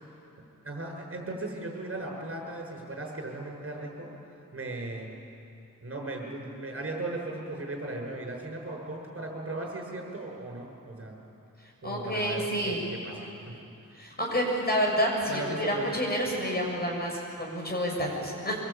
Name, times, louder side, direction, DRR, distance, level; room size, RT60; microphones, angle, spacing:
voice 1, 0.6-4.1 4.5-5.1 5.8-11.2 11.8-13.6 15.3-15.9, right 2 dB, 40° right, 0 dB, 7.2 m, -37 dB
voice 2, 11.8-12.8 14.0-18.6, equal, 30° left, -1 dB, 7.0 m, -29 dB
25.0 x 23.5 x 8.9 m, 2.7 s
wide cardioid pair, 105°, 33 cm